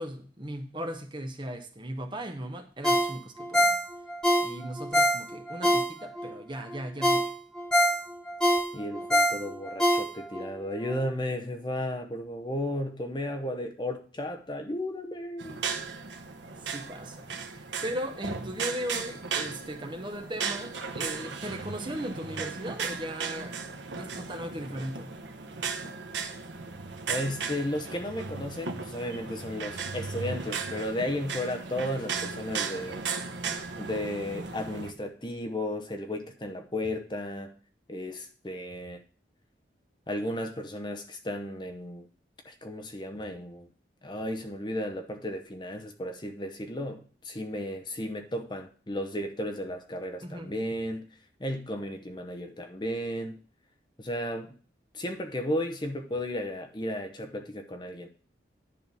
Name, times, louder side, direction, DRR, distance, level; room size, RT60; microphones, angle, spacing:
voice 1, 0.0-3.8 4.4-7.3 16.6-23.5 23.9-25.1 50.2-50.5, right 1 dB, 25° right, 0.9 m, -37 dB
Ringtone, 2.8-6.3 6.7-6.8 7.0-10.5 10.9-11.0, equal, 5° left, 1.0 m, -25 dB
voice 2, 8.7-15.6 27.1-33.1 33.7-37.5 37.9-39.0 40.1-42.1 42.4-43.7 44.0-51.1 51.4-53.4 54.0-54.5 54.9-58.1, left 1 dB, 25° left, 0.8 m, -34 dB
sound 1, 15.4-34.9, right 5 dB, 80° right, 1.0 m, -36 dB
10.5 x 3.7 x 6.8 m
head